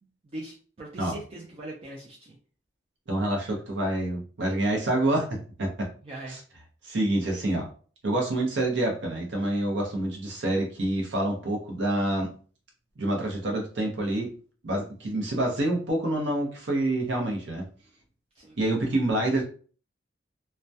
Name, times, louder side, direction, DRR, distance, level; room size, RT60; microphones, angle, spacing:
voice 1, 0.2-2.4 6.0-6.4 18.3-18.6, right 1 dB, 30° right, -3 dB, 0.4 m, -41 dB
voice 2, 3.1-5.9 6.3-6.4 6.8-7.7 8.0-12.3 13.0-14.3 14.6-17.7 18.6-19.4, right 1 dB, 70° right, 0 dB, 0.6 m, -27 dB
2.2 x 2.1 x 2.6 m, 0.41 s
head